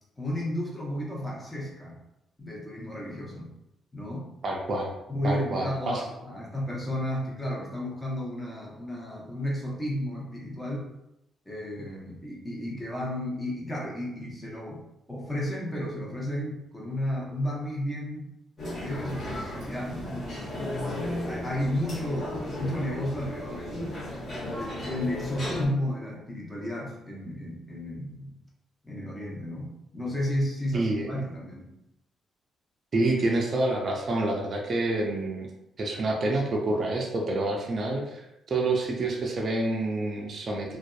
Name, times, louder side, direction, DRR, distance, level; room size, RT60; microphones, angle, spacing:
voice 1, 0.2-2.0 2.4-3.5 3.9-4.3 5.1-10.9 11.5-18.3 18.8-23.9 24.4-28.4 28.8-31.7, left 1 dB, 15° left, -4 dB, 0.8 m, -33 dB
voice 2, 4.4-4.9 5.2-6.1 30.7-31.2 32.9-35.5 35.8-40.8, right 2 dB, 45° right, -1 dB, 0.4 m, -28 dB
sound 1, 18.6-25.7, left 1 dB, 40° left, 1.1 m, -35 dB
2.5 x 2.2 x 2.3 m, 0.86 s
cardioid pair, 90°, 0 cm